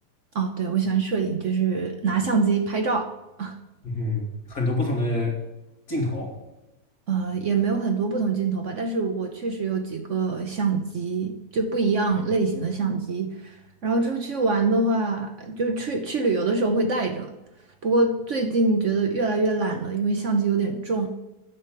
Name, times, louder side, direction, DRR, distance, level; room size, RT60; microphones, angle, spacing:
voice 1, 0.3-3.1 3.4-3.6 7.1-13.5 13.8-17.3 17.8-21.1, right 4 dB, 50° right, 5 dB, 1.1 m, -24 dB
voice 2, 3.8-5.4 5.9-6.4, left 2 dB, 60° left, -1 dB, 3.3 m, -26 dB
9.7 x 7.1 x 7.4 m, 0.98 s
omnidirectional pair, 1.8 m